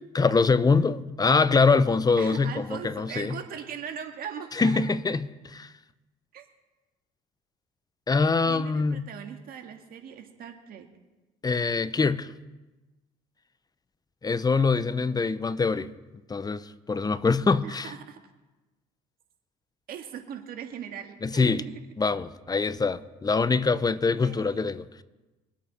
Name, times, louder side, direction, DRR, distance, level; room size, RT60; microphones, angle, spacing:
voice 1, 0.0-3.3 4.5-5.7 8.1-9.0 11.4-12.3 14.2-15.9 16.3-17.9 21.2-21.6 22.0-25.0, left 4 dB, 20° left, 0.7 m, -24 dB
voice 2, 2.2-4.8 6.3-6.5 8.5-10.9 17.6-18.2 19.9-21.8 24.2-24.7, right 8 dB, 60° right, 1.9 m, -40 dB
23.5 x 8.3 x 4.3 m
supercardioid pair, 75°, 17 cm